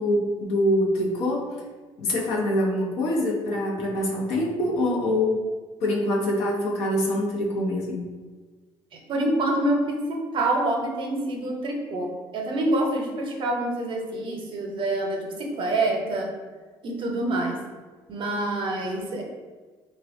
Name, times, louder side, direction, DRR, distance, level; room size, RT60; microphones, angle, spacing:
voice 1, 0.0-1.6 2.0-5.4 5.8-8.0, left 1 dB, 75° left, -2 dB, 0.7 m, -24 dB
voice 2, 8.9-12.1 12.3-16.3 16.8-17.6 18.1-19.2, right 1 dB, 55° right, 1 dB, 0.6 m, -26 dB
3.2 x 2.3 x 2.5 m, 1.4 s
supercardioid pair, 85°, 10 cm